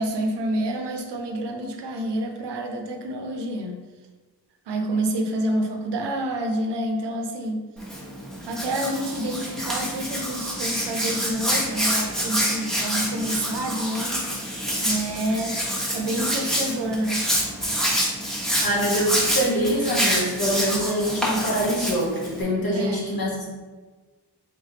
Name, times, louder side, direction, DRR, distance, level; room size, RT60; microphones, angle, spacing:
voice 1, 0.0-3.8 4.7-7.6 8.5-14.5 14.8-15.6 15.9-17.2 22.7-23.0, right 1 dB, 90° right, 3 dB, 0.6 m, -28 dB
Hands, 7.8-22.4, equal, ahead, 1.0 m, -27 dB
voice 2, 18.6-23.5, equal, 60° left, -4 dB, 1.3 m, -24 dB
3.5 x 3.2 x 2.8 m, 1.3 s
cardioid pair, 60°, 40 cm